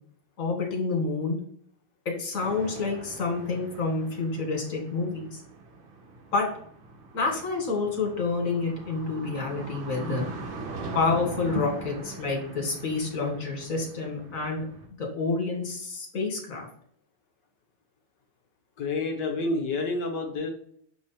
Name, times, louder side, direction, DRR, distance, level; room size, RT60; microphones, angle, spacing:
voice 1, 0.4-1.4 2.1-5.4 6.3-6.5 7.1-10.3 10.9-14.7 15.0-16.7, left 3 dB, 40° left, 1 dB, 1.9 m, -28 dB
sound 1, 2.4-14.9, right 3 dB, 70° right, 1.8 m, -42 dB
voice 2, 18.8-20.5, left 3 dB, 65° left, 3 dB, 1.3 m, -29 dB
7.2 x 3.3 x 4.2 m, 0.64 s
omnidirectional pair, 2.3 m